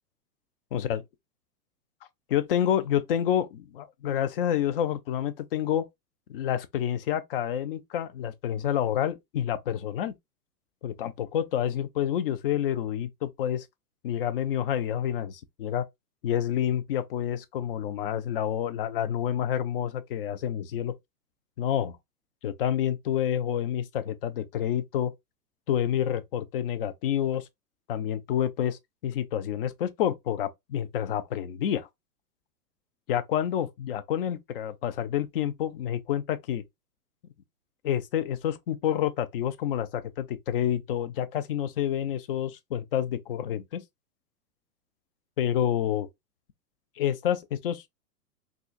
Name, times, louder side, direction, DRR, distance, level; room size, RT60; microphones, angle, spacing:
voice 1, 0.7-1.0 2.3-5.9 6.3-10.1 10.8-13.7 14.0-15.8 16.2-20.9 21.6-22.0 22.4-25.1 25.7-27.5 27.9-31.9 33.1-36.6 37.8-43.8 45.4-46.1 47.0-47.9, left 10 dB, 40° left, 0.4 m, -28 dB
3.7 x 2.4 x 2.4 m
hypercardioid pair, 115°, 48 cm